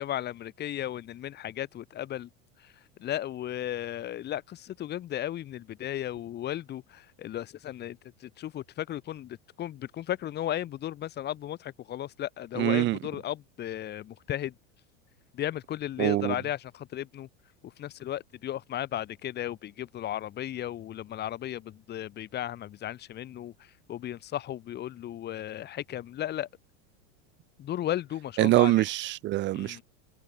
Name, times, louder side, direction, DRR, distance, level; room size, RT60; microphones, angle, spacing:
voice 1, 0.0-2.3 2.6-2.7 3.0-14.5 15.3-17.3 17.6-26.5 27.6-28.9 29.5-29.8, left 12 dB, 30° left, 6.1 m, -35 dB
voice 2, 12.6-13.0 16.0-16.3 28.4-29.8, right 16 dB, 30° right, 1.4 m, -24 dB
supercardioid pair, 160°, 35 cm